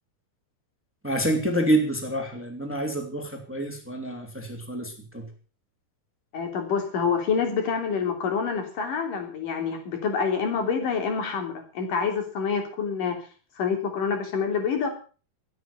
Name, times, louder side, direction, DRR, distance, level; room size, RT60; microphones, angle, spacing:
voice 1, 1.0-5.3, right 1 dB, 5° right, 4 dB, 2.3 m, -27 dB
voice 2, 6.3-13.2 13.6-14.9, left 6 dB, 60° left, 5 dB, 4.7 m, -27 dB
16.5 x 9.3 x 6.9 m, 0.38 s
omnidirectional pair, 4.4 m